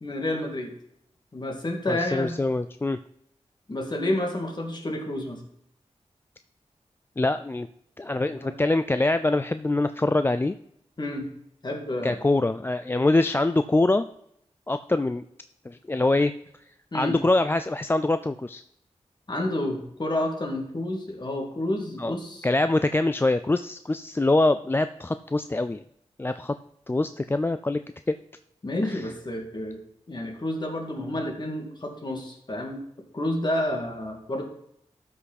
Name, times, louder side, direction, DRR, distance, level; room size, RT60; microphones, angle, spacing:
voice 1, 0.0-0.7 1.3-2.4 3.7-5.4 8.2-8.6 11.0-11.3 11.6-12.2 16.9-17.2 19.3-22.5 28.6-29.8 30.1-32.8 33.1-34.4, left 1 dB, 40° left, 2 dB, 2.2 m, -30 dB
voice 2, 1.9-3.0 7.2-7.7 8.0-10.5 12.0-14.1 14.7-15.2 15.7-16.3 16.9-18.6 22.0-22.2 22.4-25.8 26.2-26.5 26.9-27.8 28.1-28.2 28.8-29.0, left 2 dB, 20° left, 10 dB, 0.3 m, -24 dB
13.0 x 5.7 x 4.2 m, 0.73 s
wide cardioid pair, 105°, 12 cm